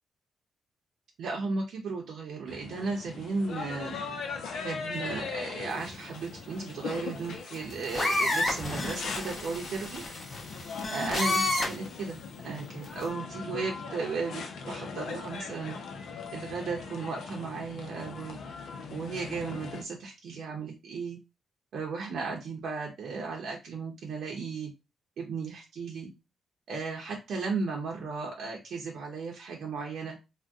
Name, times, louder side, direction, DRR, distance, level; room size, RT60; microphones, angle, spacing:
voice 1, 1.2-4.0 4.6-10.0 10.9-15.8 16.3-18.4 18.9-21.2 21.7-24.7 25.2-26.1 26.7-30.2, right 4 dB, 75° right, -1 dB, 0.7 m, -35 dB
sound 1, 2.5-19.8, left 5 dB, 75° left, 0.5 m, -40 dB
sound 2, 7.6-11.9 12.8-13.0, left 2 dB, 30° left, 1.0 m, -30 dB
2.6 x 2.1 x 3.5 m, 0.26 s
cardioid pair, 110°, 0 cm